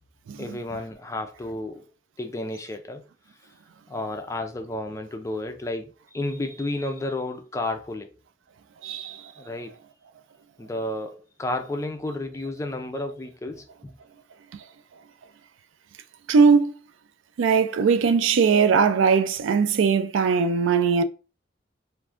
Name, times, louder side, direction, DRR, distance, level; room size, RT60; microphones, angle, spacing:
voice 1, 0.4-1.9 2.2-3.0 3.9-8.1 9.4-9.7 10.6-13.9, left 2 dB, 15° left, 0.3 m, -32 dB
voice 2, 8.8-9.2 16.3-16.7 17.4-21.0, right 5 dB, 75° right, 0.4 m, -20 dB
3.4 x 2.5 x 2.4 m
head